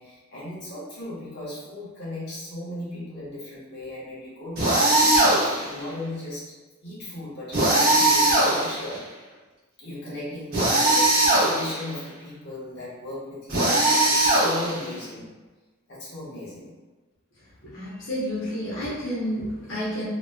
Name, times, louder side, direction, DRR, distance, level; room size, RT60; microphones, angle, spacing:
voice 1, 0.0-6.5 6.8-9.1 9.8-15.3 15.9-16.7, left 1 dB, 55° left, -9 dB, 1.2 m, -37 dB
sound 1, 4.6-5.7 7.5-9.0 10.5-11.8 13.5-14.9, right 1 dB, 45° right, 1.1 m, -20 dB
voice 2, 17.7-20.1, equal, 75° left, -9 dB, 1.1 m, -30 dB
3.1 x 2.9 x 2.2 m, 1.2 s
head